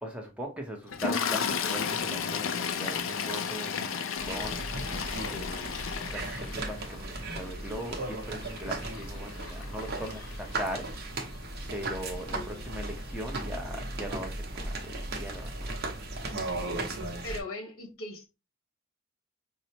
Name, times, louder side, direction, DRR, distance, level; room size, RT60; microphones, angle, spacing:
voice 1, 0.0-4.7 5.3-5.7 6.0-10.9 11.7-15.8, equal, 5° right, 0.7 m, -39 dB
Toilet flush, 0.9-11.2 12.1-12.3 12.6-12.8, left 6 dB, 65° left, 0.4 m, -34 dB
sound 1, 4.2-17.4, right 2 dB, 50° right, 0.8 m, -36 dB
voice 2, 12.3-12.7 17.2-18.3, left 2 dB, 90° left, 1.2 m, -39 dB
5.5 x 2.0 x 2.7 m
head